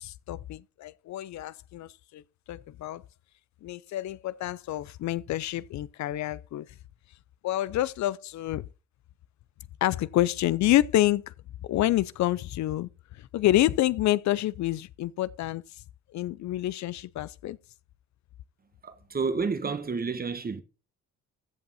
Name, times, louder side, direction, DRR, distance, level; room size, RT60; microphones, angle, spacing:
voice 1, 0.0-2.2 2.5-3.0 3.6-6.7 7.4-8.6 9.8-11.2 11.6-12.9 13.2-15.6 16.1-17.6, left 14 dB, 70° left, 0.5 m, -28 dB
voice 2, 18.8-20.6, right 4 dB, 30° right, 1.3 m, -30 dB
15.0 x 5.3 x 4.1 m
cardioid pair, 90°, 30 cm